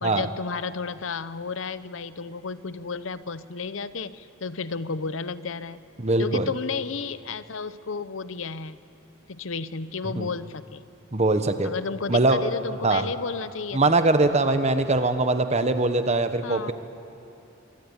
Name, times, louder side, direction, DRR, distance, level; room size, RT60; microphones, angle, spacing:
voice 1, 0.0-5.8 6.2-8.8 9.3-10.8 11.6-13.9 16.4-16.7, left 4 dB, 70° left, 14 dB, 0.8 m, -32 dB
voice 2, 6.0-6.5 10.0-10.3 11.1-11.7 12.1-12.5 12.8-13.0 13.7-16.7, right 2 dB, 35° right, 9 dB, 1.3 m, -22 dB
25.0 x 22.0 x 8.9 m, 3.0 s
head